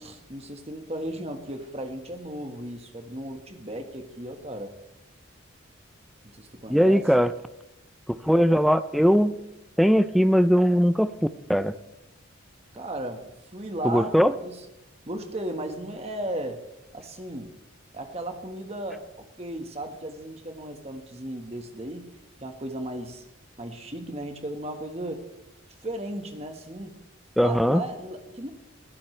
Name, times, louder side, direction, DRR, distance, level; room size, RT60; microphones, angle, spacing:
voice 1, 0.0-4.7 6.2-7.1 12.7-14.6 15.1-16.6 16.9-17.5 17.9-22.1 22.4-23.2 23.6-25.3 25.8-27.0 27.4-28.5, right 1 dB, 30° right, 5 dB, 1.5 m, -35 dB
voice 2, 6.7-7.3 8.1-9.4 9.8-11.1 11.5-11.8 13.8-14.3 27.4-27.8, equal, ahead, 12 dB, 0.4 m, -20 dB
21.5 x 14.5 x 3.3 m, 0.91 s
head